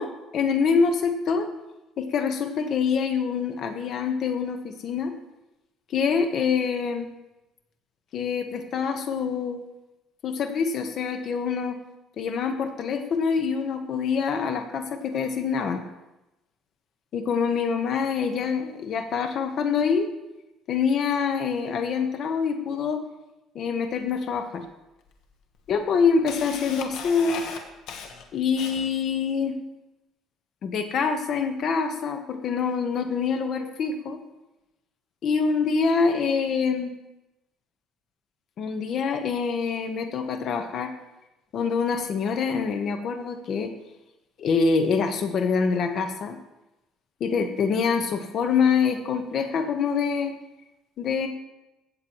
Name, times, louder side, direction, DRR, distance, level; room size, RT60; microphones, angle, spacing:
voice 1, 0.3-1.5 2.0-5.1 5.9-7.1 8.1-9.6 10.2-11.8 12.2-15.8 17.1-20.1 20.7-23.0 23.5-24.6 25.7-27.4 28.3-29.6 30.6-34.2 35.2-36.9 38.6-40.9 41.5-43.7 44.4-46.4 47.2-50.3 51.0-51.3, left 5 dB, 50° left, 7 dB, 1.1 m, -25 dB
Camera, 24.1-24.2 25.1-25.2 25.6-29.1, left 6 dB, 70° left, 1.2 m, -37 dB
15.5 x 8.0 x 3.1 m, 0.98 s
cardioid pair, 115°, 0 cm